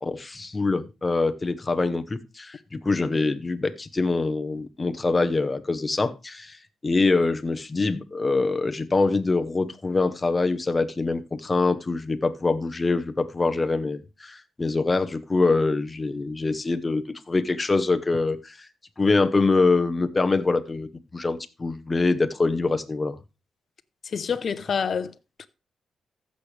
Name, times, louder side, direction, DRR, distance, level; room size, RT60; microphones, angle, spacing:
voice 1, 0.0-6.6 6.8-18.7 19.0-20.9 21.1-23.2, left 3 dB, 20° left, 0.9 m, -24 dB
voice 2, 24.1-25.5, left 6 dB, 50° left, 0.7 m, -28 dB
15.0 x 6.6 x 3.3 m
cardioid pair, 110°, 0 cm